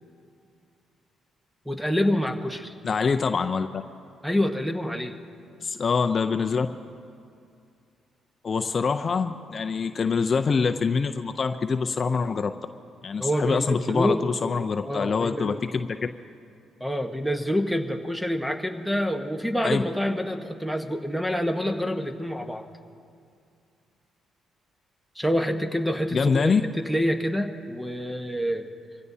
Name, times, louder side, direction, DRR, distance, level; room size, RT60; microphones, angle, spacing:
voice 1, 1.6-2.7 4.2-5.2 13.2-15.6 16.8-22.6 25.1-28.7, equal, 5° right, 5 dB, 1.1 m, -27 dB
voice 2, 2.8-3.8 5.6-6.7 8.4-12.5 13.0-15.9 19.6-19.8 26.1-26.6, left 5 dB, 40° left, 7 dB, 0.5 m, -25 dB
25.0 x 16.5 x 2.8 m, 2.4 s
cardioid pair, 90°, 0 cm